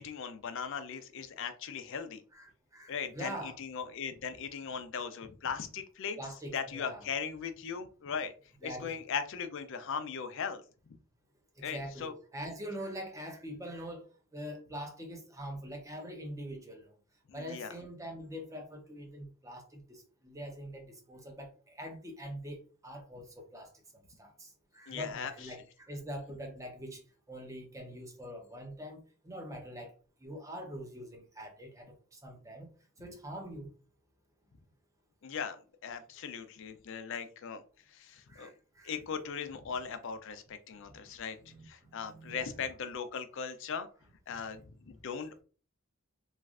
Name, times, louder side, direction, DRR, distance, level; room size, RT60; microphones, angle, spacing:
voice 1, 0.0-2.2 2.9-6.2 6.5-8.3 8.6-10.6 10.9-11.0 11.6-12.1 17.3-17.7 24.9-25.3 35.2-35.6 35.8-37.6 37.9-38.5 38.8-41.4 41.7-43.9 44.3-45.4, left 6 dB, 60° left, 0.4 m, -38 dB
voice 2, 2.3-3.6 6.2-7.1 8.6-9.0 11.6-14.1 14.3-16.9 17.3-23.7 24.2-27.0 27.3-29.9 30.2-32.7 33.0-33.7 38.3-38.9 41.4-42.6, equal, 15° right, 0.6 m, -44 dB
3.1 x 2.5 x 2.4 m
head